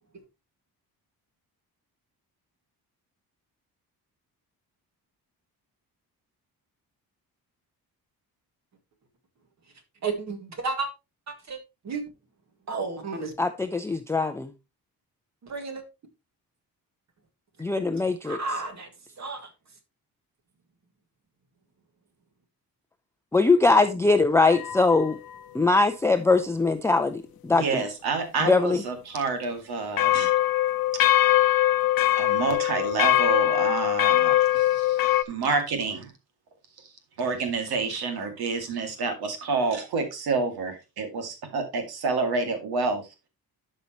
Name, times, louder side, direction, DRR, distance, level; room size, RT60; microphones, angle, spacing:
voice 1, 10.0-10.9 11.3-11.6 11.8-12.0 12.7-13.3 15.4-15.8 18.2-18.9 19.2-19.5, right 4 dB, 45° right, 2.0 m, -32 dB
voice 2, 13.4-14.5 17.6-18.4 23.3-25.2 25.5-27.8 28.5-28.8, left 3 dB, 10° left, 0.4 m, -22 dB
sound 1, 24.5-25.1 30.0-35.2, left 14 dB, 70° left, 0.7 m, -22 dB
voice 3, 27.5-30.3 30.9-31.0 32.2-36.1 36.8-36.9 37.2-43.1, right 4 dB, 85° right, 2.3 m, -28 dB
12.0 x 5.5 x 2.9 m
wide cardioid pair, 160°, 37 cm